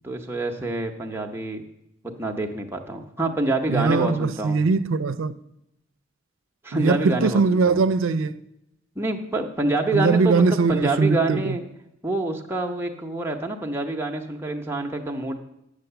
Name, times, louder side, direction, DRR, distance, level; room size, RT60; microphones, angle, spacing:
voice 1, 0.0-1.6 2.0-4.7 6.6-7.8 9.0-11.6 12.0-15.4, right 2 dB, 10° right, 0.8 m, -27 dB
voice 2, 3.7-5.4 6.7-8.4 9.9-11.6, right 4 dB, 85° right, 0.5 m, -21 dB
9.0 x 6.4 x 6.9 m
head